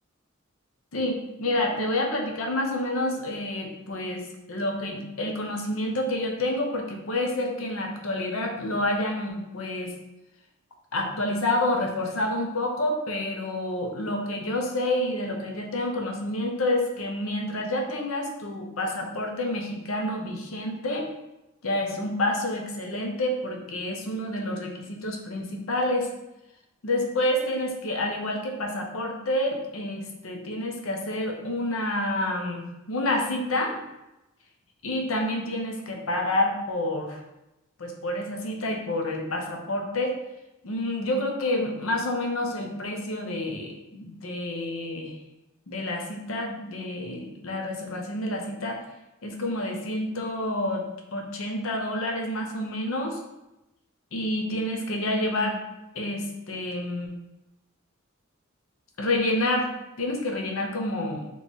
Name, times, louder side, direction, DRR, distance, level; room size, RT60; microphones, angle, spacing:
voice 1, 0.9-9.9 10.9-21.1 21.6-26.1 26.8-33.8 34.8-37.2 37.8-40.2 40.6-45.1 45.7-48.8 49.2-50.8 51.1-53.2 54.1-55.6 55.9-57.1 59.0-59.7 60.0-61.3, left 1 dB, 80° left, 2 dB, 0.8 m, -28 dB
4.1 x 3.2 x 3.6 m, 0.94 s
head